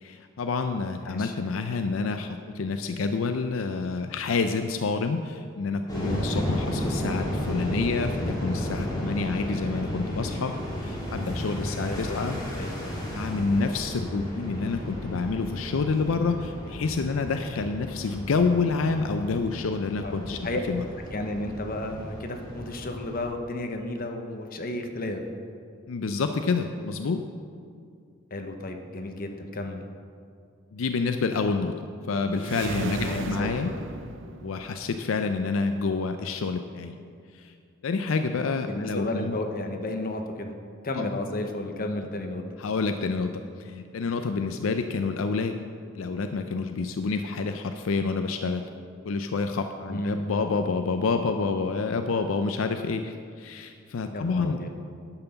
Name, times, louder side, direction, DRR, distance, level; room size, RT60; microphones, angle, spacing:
voice 1, 0.0-12.4 13.1-20.4 20.7-20.8 25.9-27.3 30.7-31.7 32.1-33.7 34.4-36.9 37.3-37.5 37.8-39.4 41.0-41.1 42.6-45.6 45.9-48.6 49.0-54.6, left 4 dB, 80° left, 7 dB, 0.5 m, -28 dB
voice 2, 1.0-1.3 11.8-12.3 12.5-13.0 20.0-20.6 21.1-25.2 28.3-29.8 32.9-33.8 38.7-40.5 40.8-42.4 49.9-50.1 54.1-54.7, left 2 dB, 45° left, 5 dB, 0.9 m, -33 dB
sound 1, 5.9-23.2, equal, 20° left, 2.8 m, -33 dB
sound 2, 32.3-34.9, right 3 dB, 65° right, 0.6 m, -35 dB
11.0 x 5.8 x 6.9 m, 2.3 s
head